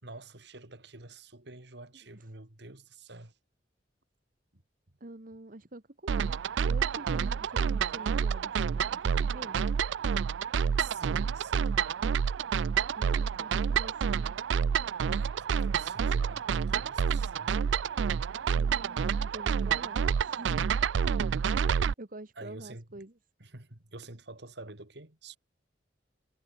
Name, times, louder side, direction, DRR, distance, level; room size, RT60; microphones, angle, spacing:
voice 1, 0.0-3.3 4.5-4.6 10.8-11.8 15.1-17.6 22.4-23.0 23.4-25.4, right 2 dB, 65° right, 3.1 m, -47 dB
voice 2, 5.0-9.6 13.0-14.4 18.5-20.6 22.0-23.1, right 2 dB, 50° right, 1.6 m, -46 dB
sound 1, 6.1-21.9, right 7 dB, 80° right, 0.4 m, -28 dB
head